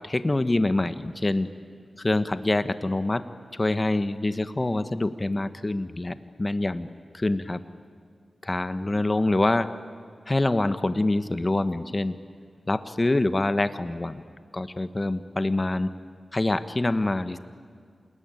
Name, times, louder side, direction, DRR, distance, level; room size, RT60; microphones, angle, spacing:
voice 1, 0.0-1.5 2.0-6.9 7.1-7.6 8.4-9.8 10.3-12.2 12.7-14.2 14.5-15.9 16.3-17.4, left 2 dB, 30° left, 12 dB, 1.3 m, -25 dB
29.0 x 20.5 x 9.2 m, 2.1 s
cardioid pair, 55°, 0 cm